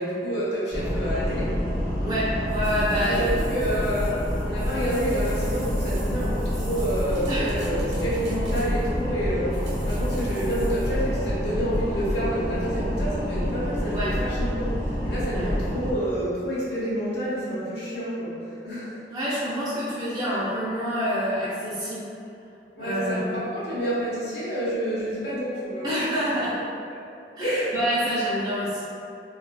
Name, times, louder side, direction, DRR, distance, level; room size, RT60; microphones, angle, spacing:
voice 1, 0.0-1.5 3.0-19.0 22.8-26.1 27.4-27.7, equal, 70° left, -9 dB, 1.1 m, -28 dB
sound 1, 0.7-15.9, equal, 45° left, 1.0 m, -28 dB
voice 2, 2.0-3.3 7.3-7.5 13.9-14.1 15.3-15.5 19.1-22.1 22.8-23.3 25.8-26.6 27.4-28.8, equal, 25° right, -10 dB, 0.5 m, -27 dB
sound 2, 2.5-9.0 9.5-11.0, right 2 dB, 85° right, 0.9 m, -47 dB
4.0 x 2.3 x 2.2 m, 2.7 s
head